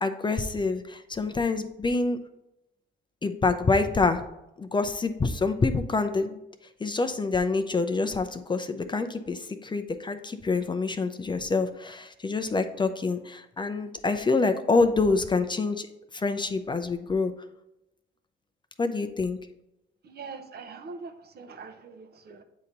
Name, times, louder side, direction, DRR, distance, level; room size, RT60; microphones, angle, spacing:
voice 1, 0.0-2.2 3.2-4.2 4.6-6.4 6.8-15.9 16.1-17.3 18.8-19.4, left 3 dB, 25° left, 8 dB, 0.5 m, -26 dB
voice 2, 20.0-22.4, right 4 dB, 55° right, 8 dB, 0.7 m, -42 dB
7.9 x 2.9 x 5.2 m, 0.87 s
cardioid pair, 90°, 20 cm